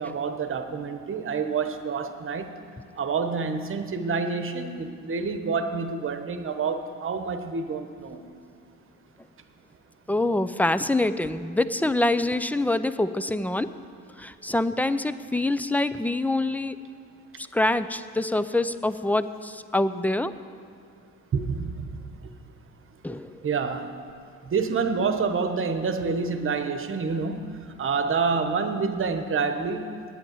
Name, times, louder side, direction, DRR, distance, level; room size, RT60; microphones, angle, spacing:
voice 1, 0.0-2.5 3.0-8.2 21.3-21.9 23.4-23.9 24.5-27.4 27.8-29.9, right 5 dB, 45° right, 8 dB, 1.1 m, -27 dB
voice 2, 10.1-13.7 14.2-16.8 17.4-20.3 23.0-23.4, left 2 dB, 5° left, 13 dB, 0.4 m, -25 dB
9.0 x 8.7 x 9.4 m, 2.2 s
cardioid pair, 90°, 30 cm